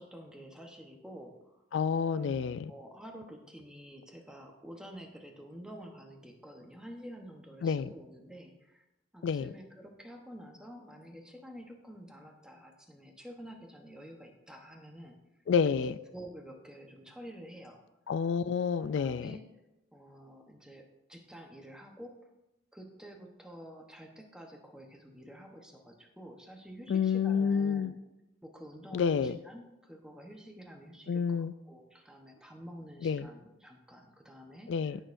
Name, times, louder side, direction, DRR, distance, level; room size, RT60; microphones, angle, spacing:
voice 1, 0.0-1.6 2.1-2.4 2.7-8.8 9.1-15.2 16.1-17.8 19.0-19.4 19.9-22.3 22.7-27.9 28.4-35.0, equal, 5° right, 2 dB, 1.0 m, -49 dB
voice 2, 1.7-2.7 7.6-7.9 9.2-9.5 15.5-15.9 18.1-19.4 26.9-27.9 28.9-29.4 31.1-31.5 33.0-33.3 34.7-35.0, left 6 dB, 75° left, 14 dB, 0.3 m, -29 dB
16.5 x 6.4 x 2.6 m, 0.95 s
head